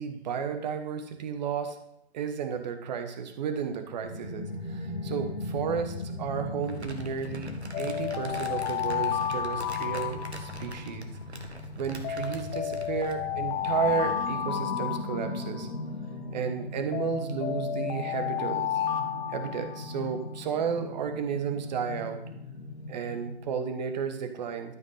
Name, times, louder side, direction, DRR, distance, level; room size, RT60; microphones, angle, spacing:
voice 1, 0.0-1.8 2.1-11.1 11.8-15.7 16.3-18.7 19.3-22.2 22.9-24.7, right 7 dB, 40° right, 7 dB, 1.3 m, -33 dB
sound 1, 4.0-23.3, left 2 dB, 85° left, 2.0 m, -39 dB
Crumpling crinkling, 6.6-13.3, right 2 dB, 85° right, 1.5 m, -45 dB
sound 2, 7.7-10.9 12.0-15.8 16.9-20.1, left 9 dB, 15° left, 0.6 m, -32 dB
12.5 x 5.3 x 5.7 m, 0.79 s
figure-of-eight pair, 120°, 32 cm